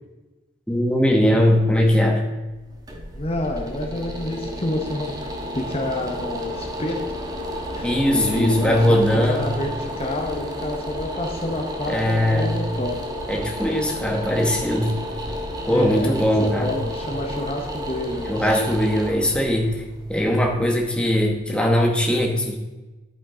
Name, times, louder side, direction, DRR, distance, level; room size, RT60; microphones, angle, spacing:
voice 1, 0.7-2.2 7.8-9.5 11.9-12.6 13.3-14.9 15.7-16.8 18.3-19.8 20.1-22.6, equal, 5° left, 0 dB, 1.1 m, -20 dB
sound 1, 2.5-21.4, equal, 20° right, 1.1 m, -32 dB
voice 2, 3.1-7.0 7.7-9.0 9.2-13.0 15.7-18.6, left 1 dB, 30° left, 2 dB, 0.9 m, -28 dB
11.0 x 9.1 x 3.8 m, 1.2 s
head